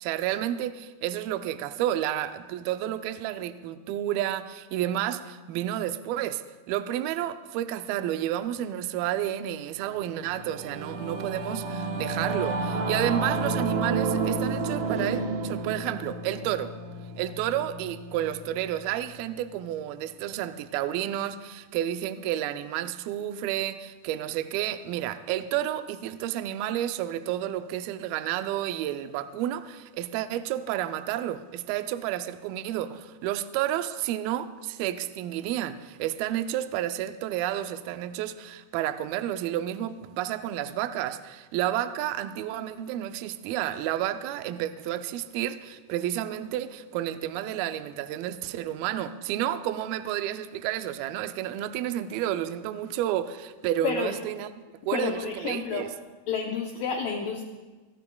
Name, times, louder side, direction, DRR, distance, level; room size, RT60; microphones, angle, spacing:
voice 1, 0.0-6.4 6.7-16.7 17.2-54.5 54.8-55.9, right 12 dB, 90° right, 10 dB, 2.1 m, -31 dB
Singing / Musical instrument, 9.9-19.6, right 3 dB, 70° right, 2.9 m, -31 dB
voice 2, 54.9-55.9 56.3-57.4, left 6 dB, 85° left, 1 dB, 1.9 m, -30 dB
25.5 x 11.0 x 2.3 m, 1.3 s
omnidirectional pair, 4.9 m